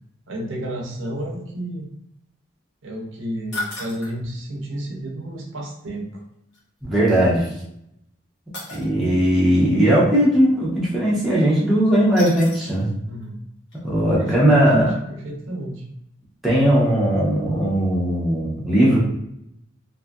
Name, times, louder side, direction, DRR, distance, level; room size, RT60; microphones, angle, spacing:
voice 1, 0.3-1.9 2.8-6.2 10.1-10.2 13.0-13.4 14.2-15.8, right 1 dB, 75° right, -1 dB, 0.6 m, -31 dB
sound 1, 3.5-4.2 6.5-6.6 8.5-8.9 12.1-12.8 13.2-13.3 13.7-13.8, left 2 dB, 65° left, 1.1 m, -33 dB
voice 2, 6.8-7.5 8.8-12.9 13.8-14.9 16.4-19.0, right 1 dB, ahead, -8 dB, 0.7 m, -18 dB
2.6 x 2.4 x 2.3 m, 0.78 s
head